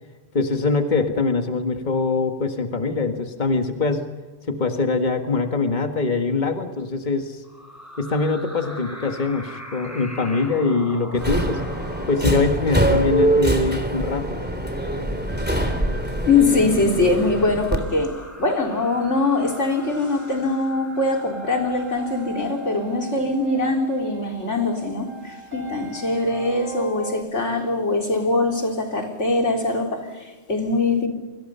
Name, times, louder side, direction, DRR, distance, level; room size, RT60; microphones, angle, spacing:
voice 1, 0.3-4.0 4.4-7.4 8.0-11.6 12.1-14.3, left 3 dB, 40° left, 6 dB, 1.8 m, -23 dB
sound 1, 7.4-23.1, equal, 15° left, 4.4 m, -42 dB
sound 2, 9.8-27.2, right 2 dB, 45° right, 3.3 m, -42 dB
Subway metro underground, 11.1-17.8, right 1 dB, 10° right, 3.3 m, -24 dB
voice 2, 16.3-31.1, left 3 dB, 85° left, 3 dB, 4.0 m, -22 dB
29.0 x 25.0 x 5.6 m, 1.3 s
omnidirectional pair, 1.2 m